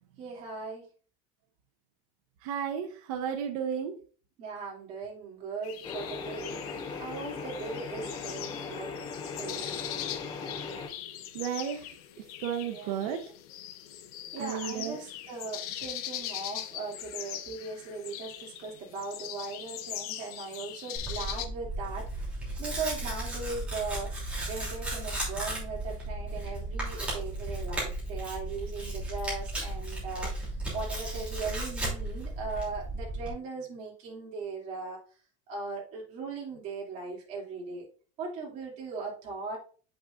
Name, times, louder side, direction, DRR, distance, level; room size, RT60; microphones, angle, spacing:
voice 1, 0.2-0.9 4.4-6.6 7.0-8.9 9.4-9.8 12.6-13.1 14.3-22.3 22.6-35.0 35.5-37.9 38.2-39.6, right 4 dB, 40° right, -3 dB, 2.7 m, -39 dB
voice 2, 2.4-4.0 11.3-11.9 12.4-13.3 14.4-15.0, right 8 dB, 85° right, 4 dB, 0.9 m, -33 dB
sound 1, 5.6-21.5, left 12 dB, 90° left, 0.9 m, -41 dB
sound 2, 5.8-10.9, left 4 dB, 25° left, 0.8 m, -38 dB
Tearing, 20.9-33.3, right 1 dB, 5° right, 3.0 m, -35 dB
8.0 x 6.0 x 2.5 m, 0.39 s
cardioid pair, 180°, 19 cm